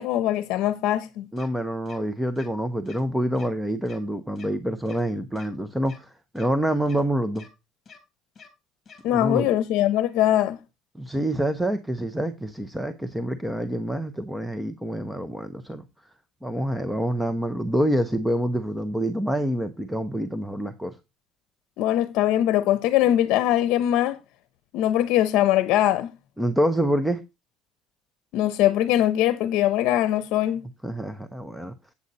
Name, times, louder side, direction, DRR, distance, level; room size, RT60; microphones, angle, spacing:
voice 1, 0.0-1.3 9.0-10.6 21.8-24.2 24.7-26.1 28.3-30.6, left 12 dB, 65° left, 0.8 m, -22 dB
voice 2, 1.3-7.5 9.0-9.5 10.9-15.9 16.4-21.0 26.4-27.2 30.8-31.7, equal, 5° right, 0.6 m, -27 dB
sound 1, 1.4-1.5 1.9-2.0 2.4-2.5 2.9-3.0 3.3-3.5 3.9-4.0 4.4-4.5 4.9-5.0 5.4-5.5 5.9-6.0 6.4-6.5 6.9-7.0 7.4-7.5 7.9-8.0 8.4-8.5 8.9-9.0, left 5 dB, 25° left, 2.6 m, -47 dB
8.4 x 7.8 x 4.1 m
cardioid pair, 150°, 0 cm